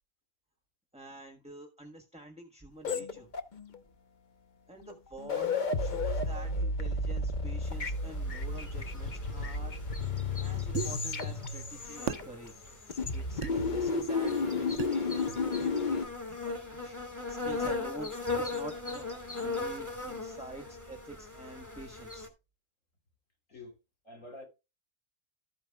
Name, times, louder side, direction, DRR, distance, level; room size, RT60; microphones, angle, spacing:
voice 1, 0.9-3.3 4.7-10.0 10.4-12.6 13.1-15.1 15.6-17.0 17.3-19.1 19.4-22.3, right 1 dB, 5° right, 1.3 m, -48 dB
sound 1, 2.8-3.8 4.8-4.9 5.2-12.6 12.9-16.1, left 3 dB, 40° left, 0.9 m, -32 dB
sound 2, 7.6-22.3, left 3 dB, 10° left, 2.5 m, -39 dB
sound 3, 10.7-10.9 12.1-12.3 13.4-13.6 14.8-15.0, right 9 dB, 65° right, 0.9 m, -33 dB
voice 2, 24.0-24.4, left 2 dB, 65° left, 3.6 m, -47 dB
13.5 x 8.9 x 2.3 m
omnidirectional pair, 1.4 m